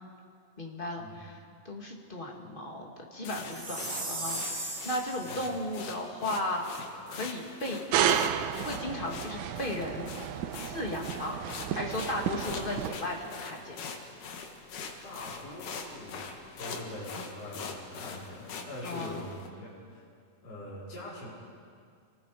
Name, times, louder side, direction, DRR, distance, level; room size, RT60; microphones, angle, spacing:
voice 1, 0.6-1.4 1.6-8.1 8.5-10.1 10.6-11.4 11.7-13.8 18.8-19.2, left 1 dB, 20° left, 0 dB, 2.1 m, -36 dB
sound 1, 3.2-19.5, left 5 dB, 85° left, 3.1 m, -43 dB
Chime, 3.5-5.5, right 2 dB, 45° right, 5.5 m, -37 dB
sound 2, 7.9-13.0, right 10 dB, 80° right, 2.1 m, -32 dB
voice 2, 15.0-16.3 16.6-20.1 20.4-21.3, left 1 dB, 55° left, -7 dB, 6.0 m, -43 dB
29.0 x 19.5 x 5.0 m, 2.2 s
omnidirectional pair, 3.6 m